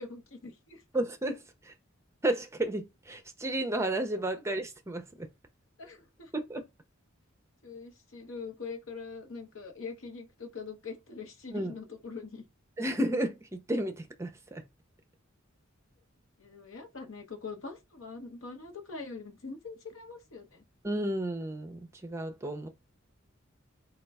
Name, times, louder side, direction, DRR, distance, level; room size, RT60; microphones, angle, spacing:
voice 1, 0.0-0.8 4.3-4.4 5.8-6.3 7.6-12.4 16.4-20.6, left 4 dB, 75° left, 0.9 m, -43 dB
voice 2, 0.9-1.7 2.2-5.3 6.3-6.6 11.5-11.7 12.8-14.6 20.8-22.7, right 1 dB, 15° right, 0.5 m, -32 dB
4.3 x 2.3 x 3.4 m
head